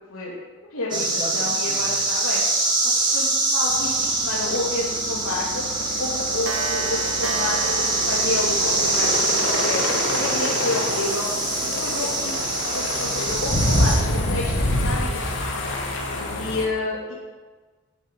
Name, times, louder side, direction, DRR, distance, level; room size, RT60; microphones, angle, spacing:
voice 1, 0.7-2.4 2.8-5.6 6.0-9.8 10.1-11.3 11.6-12.4 12.7-15.5 16.3-17.2, left 2 dB, 80° left, -7 dB, 3.3 m, -30 dB
sound 1, 0.9-14.0, right 2 dB, 20° right, 2.6 m, -24 dB
sound 2, 3.7-16.7, left 1 dB, 55° left, 3.0 m, -27 dB
Clock, 4.5-4.6 5.0-5.1 5.4-5.5 5.8-9.9, right 5 dB, 60° right, 1.7 m, -33 dB
11.0 x 10.5 x 9.5 m, 1.4 s
head